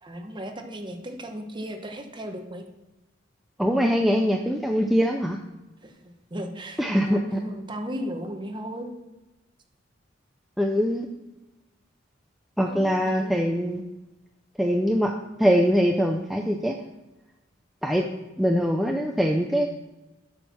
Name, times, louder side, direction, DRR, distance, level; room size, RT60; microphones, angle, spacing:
voice 1, 0.0-2.6 5.8-9.0 12.7-13.4, equal, 25° right, 4 dB, 1.0 m, -36 dB
voice 2, 3.6-5.4 6.8-7.4 10.6-11.1 12.6-13.8 14.6-15.1 15.4-16.8 17.8-18.1 18.4-19.7, equal, ahead, 2 dB, 0.5 m, -23 dB
7.8 x 6.2 x 5.8 m, 1.0 s
head